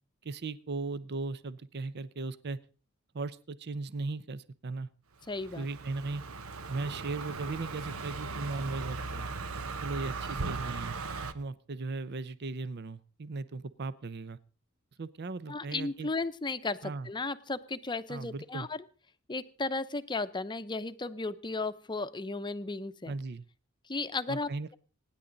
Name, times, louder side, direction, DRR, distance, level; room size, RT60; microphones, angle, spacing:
voice 1, 0.2-2.6 3.1-4.9 5.6-6.2 6.7-9.3 9.8-11.0 11.3-14.4 15.0-16.1 16.8-17.1 18.1-18.7 23.1-23.4 24.3-24.7, right 3 dB, 50° right, 16 dB, 0.6 m, -37 dB
voice 2, 5.3-5.7 15.5-18.8 19.3-23.1 23.9-24.7, left 3 dB, 20° left, 12 dB, 0.7 m, -35 dB
Car passing by, 5.3-11.3, right 4 dB, 85° right, 1.0 m, -38 dB
25.0 x 10.0 x 3.9 m, 0.36 s
head